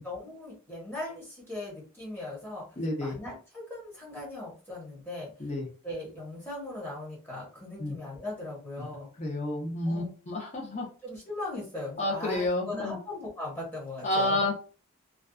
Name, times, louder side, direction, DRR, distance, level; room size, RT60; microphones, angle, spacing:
voice 1, 0.0-2.7 3.0-5.3 5.8-9.1 9.8-10.1 11.0-14.4, left 2 dB, 10° left, -6 dB, 1.0 m, -39 dB
voice 2, 2.8-3.2 5.4-5.7 7.8-7.9 8.8-8.9 9.2-10.9 12.0-13.0 14.0-14.5, left 1 dB, 30° left, -1 dB, 0.7 m, -30 dB
2.4 x 2.3 x 2.3 m, 0.36 s
head